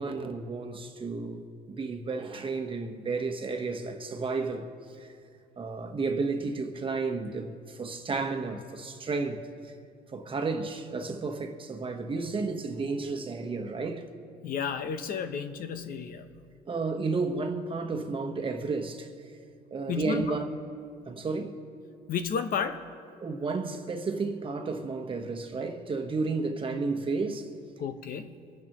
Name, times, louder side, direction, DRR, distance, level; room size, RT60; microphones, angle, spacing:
voice 1, 0.0-4.7 5.0-5.2 5.6-9.7 10.1-14.1 16.6-19.1 19.7-20.5 21.1-21.6 23.2-27.5, right 4 dB, 30° right, 1.2 m, -32 dB
voice 2, 14.4-16.3 19.9-20.4 22.1-22.8 27.8-28.4, left 6 dB, 60° left, 0.8 m, -32 dB
25.5 x 10.0 x 3.0 m
cardioid pair, 110°, 17 cm